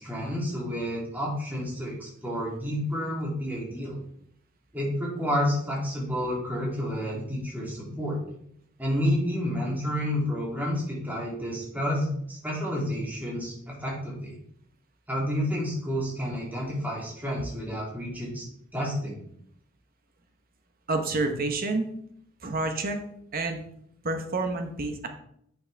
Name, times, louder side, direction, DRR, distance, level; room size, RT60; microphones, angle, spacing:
voice 1, 0.0-3.9 4.7-8.2 8.8-13.5 13.8-14.3 15.1-18.4 18.7-19.2, equal, 10° right, -5 dB, 2.6 m, -30 dB
voice 2, 20.9-21.9 22.4-23.0 23.3-23.6 24.0-25.1, right 3 dB, 45° right, 5 dB, 1.0 m, -28 dB
8.7 x 6.4 x 3.4 m, 0.69 s
head